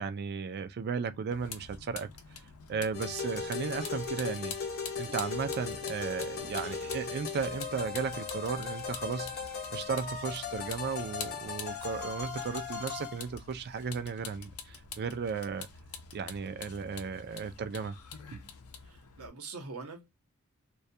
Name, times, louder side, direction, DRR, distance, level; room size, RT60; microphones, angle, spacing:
voice 1, 0.0-2.1 2.7-4.6 5.0-9.3 9.7-15.7 16.1-18.0 18.3-18.5, right 5 dB, 45° right, 0.3 m, -35 dB
Vehicle, 1.3-19.3, left 6 dB, 85° left, 0.5 m, -47 dB
sound 1, 2.9-13.2, left 5 dB, 45° left, 0.7 m, -38 dB
voice 2, 18.8-20.1, right 4 dB, 85° right, 0.8 m, -44 dB
2.2 x 2.2 x 2.6 m
head